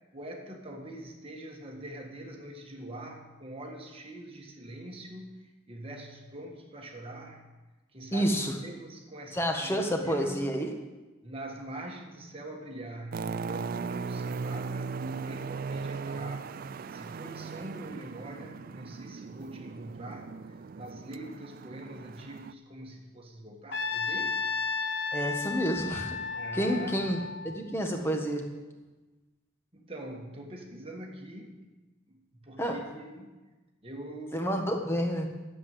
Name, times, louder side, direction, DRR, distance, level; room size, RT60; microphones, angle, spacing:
voice 1, 0.1-7.4 7.9-10.5 11.2-16.5 16.9-24.4 26.3-27.2 29.7-31.6 32.1-33.4 33.8-34.5, right 1 dB, 30° right, 1 dB, 1.5 m, -43 dB
voice 2, 8.1-8.5 9.3-10.7 25.1-27.2 27.4-28.4 32.6-32.8 34.3-35.3, equal, 10° left, 2 dB, 1.5 m, -29 dB
sound 1, 13.1-22.5, right 5 dB, 45° right, 0.3 m, -38 dB
Trumpet, 23.7-27.9, left 5 dB, 55° left, 1.1 m, -33 dB
13.0 x 8.1 x 7.9 m, 1.2 s
head